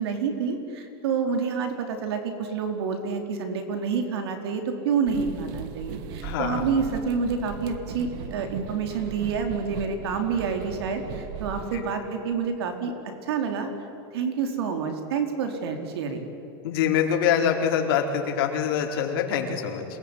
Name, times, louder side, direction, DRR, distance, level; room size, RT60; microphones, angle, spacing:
voice 1, 0.0-12.9 13.2-13.7 14.1-16.3, right 5 dB, 85° right, 5 dB, 4.3 m, -28 dB
sound 1, 5.0-11.8, right 8 dB, 55° right, 1.7 m, -38 dB
voice 2, 6.2-6.6 11.7-11.9 16.6-19.9, left 8 dB, 65° left, 2 dB, 4.5 m, -25 dB
27.5 x 20.5 x 9.9 m, 2.9 s
supercardioid pair, 160°, 13 cm